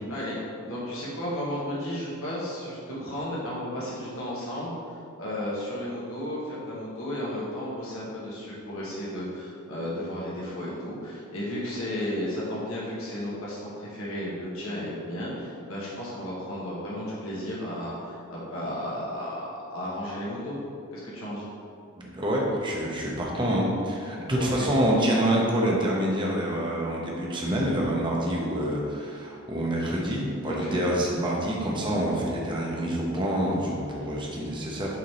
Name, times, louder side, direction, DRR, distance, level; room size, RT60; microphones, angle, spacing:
voice 1, 0.7-20.6 20.9-21.5 24.3-24.7 30.4-30.8, left 1 dB, 80° left, -7 dB, 1.5 m, -33 dB
voice 2, 22.0-35.0, right 1 dB, 25° right, -3 dB, 1.0 m, -27 dB
6.4 x 3.7 x 4.3 m, 2.4 s
head